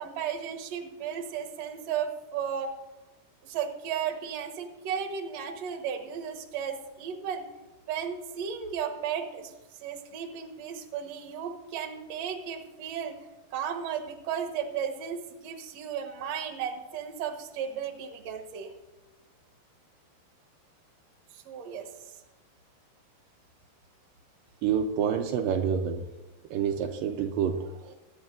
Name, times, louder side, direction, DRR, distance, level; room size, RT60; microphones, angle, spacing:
voice 1, 0.0-2.7 3.4-7.4 7.9-9.5 9.8-13.2 13.5-18.7 21.3-21.9, right 8 dB, 60° right, 3 dB, 2.2 m, -34 dB
voice 2, 24.6-26.1 26.5-28.0, right 7 dB, 85° right, 4 dB, 2.4 m, -28 dB
22.5 x 9.5 x 2.6 m, 1.1 s
omnidirectional pair, 4.1 m